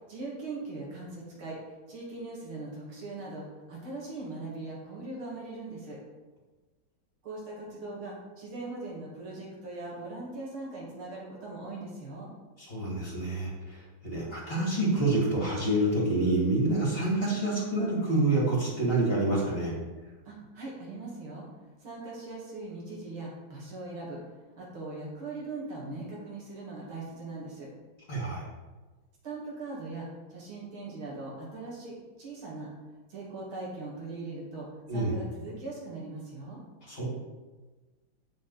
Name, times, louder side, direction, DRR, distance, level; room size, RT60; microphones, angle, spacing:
voice 1, 0.0-1.6 1.9-6.0 7.2-12.3 20.3-21.5 21.8-24.2 24.6-27.7 29.2-32.7 33.1-36.6, right 2 dB, 85° right, -4 dB, 3.3 m, -40 dB
voice 2, 12.6-19.7 28.1-28.4 34.9-35.1 36.9-37.0, right 2 dB, 30° left, -5 dB, 2.8 m, -27 dB
9.0 x 6.9 x 4.2 m, 1.3 s
omnidirectional pair, 2.2 m